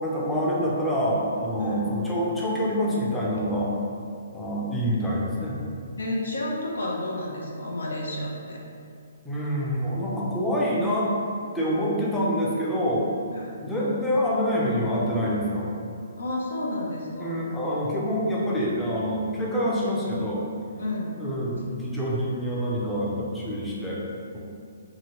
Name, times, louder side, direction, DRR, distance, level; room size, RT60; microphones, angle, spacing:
voice 1, 0.0-3.7 4.3-5.6 9.2-11.1 11.5-13.1 13.6-15.7 17.2-20.4 21.2-24.0 24.3-24.4, equal, 5° left, -6 dB, 0.4 m, -26 dB
voice 2, 6.0-8.6 13.3-13.6 16.2-17.5 20.8-21.1, left 1 dB, 85° left, -2 dB, 0.7 m, -31 dB
2.9 x 2.7 x 2.9 m, 2.4 s
hypercardioid pair, 165°, 0 cm